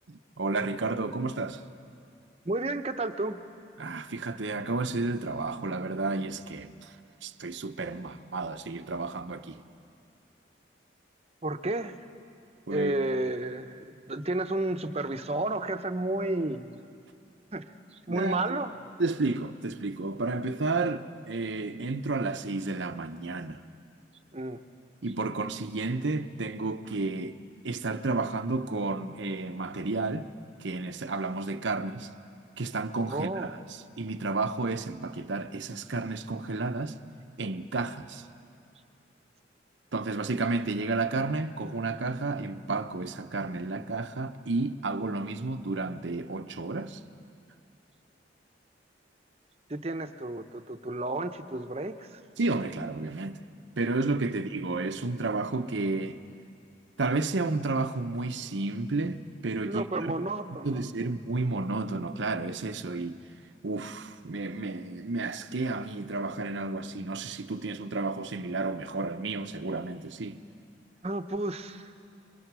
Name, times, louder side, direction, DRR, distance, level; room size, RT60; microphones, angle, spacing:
voice 1, 0.1-1.6 3.8-7.0 7.2-9.6 12.7-12.9 18.1-18.6 19.0-23.6 25.0-27.4 27.6-30.3 30.6-32.1 32.6-33.6 34.0-37.0 37.4-38.3 39.9-47.0 52.4-53.4 53.8-56.2 57.0-60.1 60.6-63.2 63.6-70.4, right 3 dB, 85° right, 0.9 m, -31 dB
voice 2, 2.4-3.4 11.4-12.0 12.7-16.7 17.5-18.7 24.3-24.6 33.1-33.6 49.7-52.2 59.6-60.8 71.0-71.9, right 2 dB, 35° right, 0.8 m, -32 dB
27.5 x 22.5 x 6.2 m
head